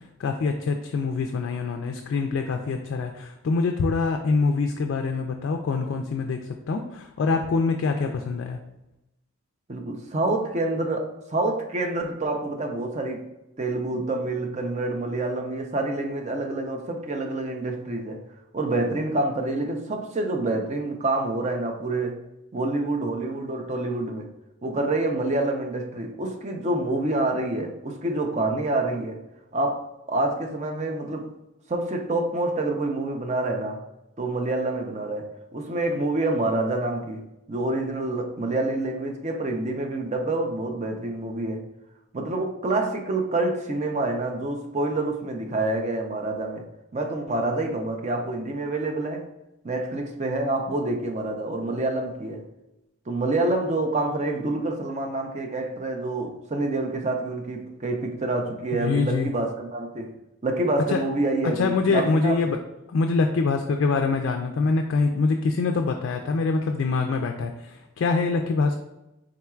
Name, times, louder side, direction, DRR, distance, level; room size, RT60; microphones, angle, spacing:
voice 1, 0.2-6.4 6.7-8.6 58.7-59.3 60.9-61.0 61.6-62.6 62.9-68.8, left 4 dB, 60° left, 0.3 m, -24 dB
voice 2, 9.7-13.3 13.6-18.2 18.5-22.2 22.5-24.3 24.6-29.2 29.5-31.3 31.7-33.8 34.2-37.2 37.5-41.6 42.1-46.6 46.9-49.3 49.6-52.4 53.1-60.1 60.4-62.3, right 2 dB, 30° right, 0.5 m, -27 dB
4.3 x 3.7 x 2.3 m
head